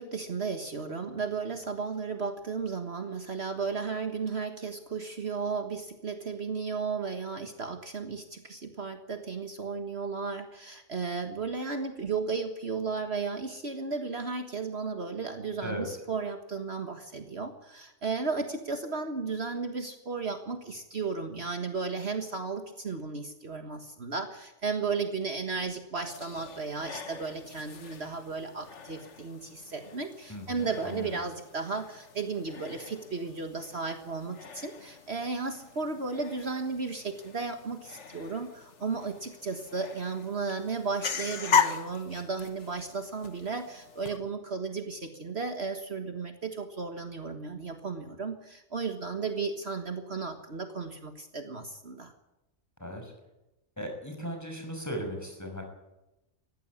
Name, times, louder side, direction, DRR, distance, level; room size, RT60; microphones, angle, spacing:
voice 1, 0.0-52.1, right 4 dB, 50° right, 6 dB, 1.8 m, -34 dB
sound 1, 26.0-44.2, left 6 dB, 60° left, 1.7 m, -37 dB
voice 2, 30.3-31.1 52.8-53.1 53.8-55.6, equal, 10° left, 3 dB, 6.0 m, -37 dB
19.5 x 15.0 x 9.8 m, 0.95 s
omnidirectional pair, 1.4 m